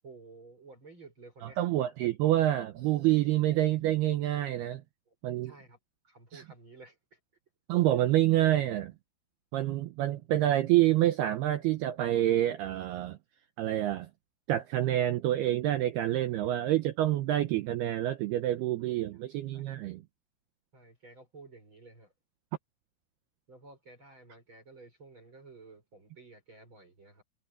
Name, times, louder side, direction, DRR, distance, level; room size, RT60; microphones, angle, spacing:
voice 1, 0.0-1.7 5.1-5.2 5.4-5.8 6.0-7.2 7.9-8.1 16.1-16.4 18.8-19.7 20.7-22.1 23.5-27.2, right 3 dB, 25° right, 5.9 m, -53 dB
voice 2, 1.6-4.8 5.2-5.5 6.3-6.4 7.7-8.9 9.5-13.2 13.6-14.1 14.5-20.0, right 13 dB, 80° right, 2.3 m, -27 dB
omnidirectional pair, 5.7 m